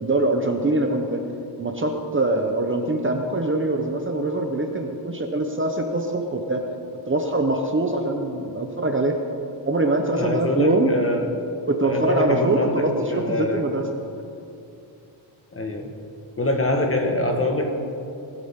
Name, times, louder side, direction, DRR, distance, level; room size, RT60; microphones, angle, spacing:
voice 1, 0.0-1.2 1.6-6.6 7.1-9.2 9.6-10.9 11.7-13.9, right 2 dB, 25° right, 3 dB, 1.0 m, -23 dB
voice 2, 10.1-11.3 11.8-13.6 15.5-15.9 16.4-17.7, left 1 dB, 30° left, 3 dB, 1.6 m, -24 dB
20.0 x 12.0 x 3.8 m, 2.7 s
wide cardioid pair, 135°, 48 cm